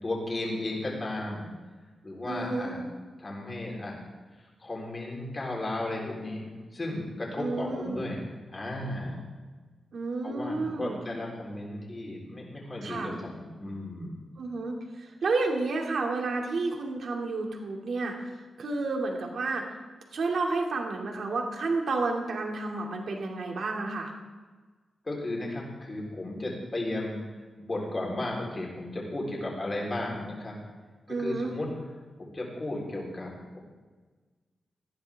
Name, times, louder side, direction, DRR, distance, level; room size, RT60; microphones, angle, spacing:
voice 1, 0.0-1.5 2.0-2.8 3.2-4.0 4.6-6.5 6.7-8.2 8.5-9.2 10.2-14.2 25.0-27.2 27.6-30.6 31.2-31.7 32.2-33.6, left 1 dB, 25° left, -2 dB, 3.9 m, -34 dB
voice 2, 2.3-2.7 7.4-8.0 9.9-11.0 12.8-13.1 14.4-18.2 18.6-19.6 20.1-24.1 31.1-31.5, right 3 dB, 60° right, 1 dB, 2.5 m, -31 dB
19.0 x 14.5 x 3.6 m, 1.4 s
wide cardioid pair, 175°, 0 cm